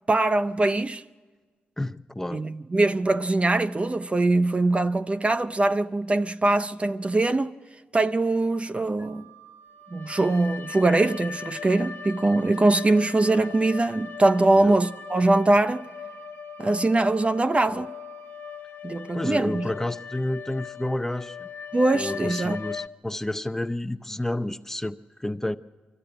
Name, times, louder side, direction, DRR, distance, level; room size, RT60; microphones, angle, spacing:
voice 1, 0.1-1.0 2.3-7.5 7.9-9.3 9.9-15.9 16.6-17.9 18.8-19.7 21.7-22.6, right 2 dB, 30° right, 0.5 m, -22 dB
voice 2, 1.8-2.4 14.5-14.8 17.7-17.9 19.1-21.5 21.9-25.6, left 1 dB, 10° left, 0.6 m, -30 dB
Wind instrument woodwind instrument, 9.0-18.6, right 12 dB, 75° right, 1.2 m, -49 dB
sound 1, 9.8-22.9, left 7 dB, 65° left, 0.6 m, -39 dB
23.5 x 13.5 x 8.8 m
supercardioid pair, 50°, 4 cm